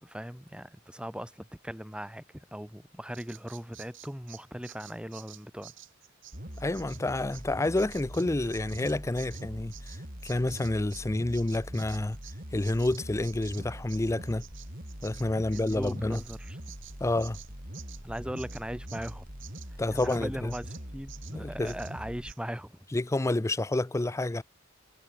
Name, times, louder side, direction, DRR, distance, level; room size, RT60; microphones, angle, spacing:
voice 1, 0.0-5.7 15.1-16.6 18.0-19.3 19.9-22.8, equal, 5° right, 4.5 m, -39 dB
Bird vocalization bird call bird song, 3.1-11.1 11.3-20.2 20.5-20.8 21.1-21.4 21.7-21.9 22.3-22.4, right 13 dB, 65° right, 4.1 m, -51 dB
sound 1, 6.3-22.3, equal, 45° right, 4.8 m, -43 dB
voice 2, 6.6-12.2 12.5-14.4 15.0-16.2 17.0-17.4 19.8-20.5 21.3-21.7 22.9-24.4, left 2 dB, 15° left, 0.5 m, -29 dB
head